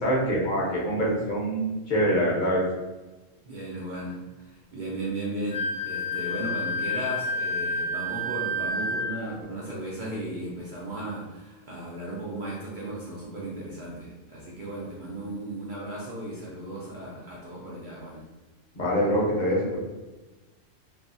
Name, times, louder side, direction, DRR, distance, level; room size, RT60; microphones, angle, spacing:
voice 1, 0.0-2.6 18.7-19.8, equal, 45° left, -5 dB, 0.8 m, -25 dB
voice 2, 3.4-18.2, right 1 dB, 65° right, -5 dB, 0.5 m, -36 dB
Wind instrument woodwind instrument, 5.5-9.2, left 1 dB, 70° left, 1.0 m, -29 dB
2.6 x 2.4 x 2.5 m, 1.2 s
omnidirectional pair, 1.3 m